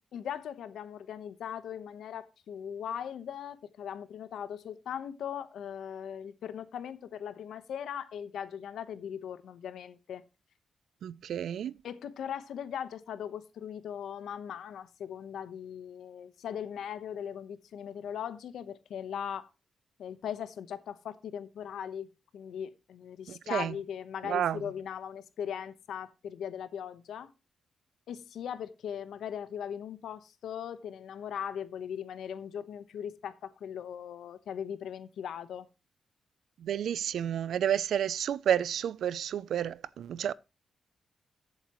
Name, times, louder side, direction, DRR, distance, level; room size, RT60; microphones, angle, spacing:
voice 1, 0.1-10.2 11.8-19.5 20.0-22.1 22.3-27.3 28.1-35.6, left 8 dB, 80° left, 1.0 m, -39 dB
voice 2, 11.0-11.8 23.3-23.8 24.2-24.6 36.6-40.3, right 9 dB, 70° right, 0.4 m, -30 dB
14.5 x 8.0 x 3.0 m
wide cardioid pair, 170°, 0 cm